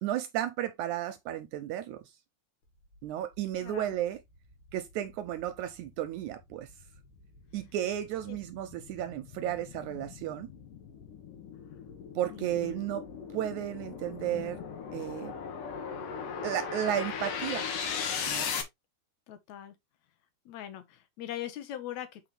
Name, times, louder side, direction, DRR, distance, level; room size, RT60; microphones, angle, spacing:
voice 1, 0.0-2.1 3.0-4.2 4.7-6.7 7.5-10.5 12.2-14.6 14.9-15.4 16.4-17.7 18.3-18.5, right 11 dB, 80° right, 1.9 m, -33 dB
voice 2, 3.6-4.0 8.3-8.4 12.3-12.7 19.3-19.8 20.5-22.2, left 12 dB, 65° left, 2.3 m, -41 dB
sound 1, 3.9-4.0 4.5-18.6, left 6 dB, 85° left, 3.0 m, -38 dB
7.4 x 5.0 x 3.3 m
omnidirectional pair, 3.7 m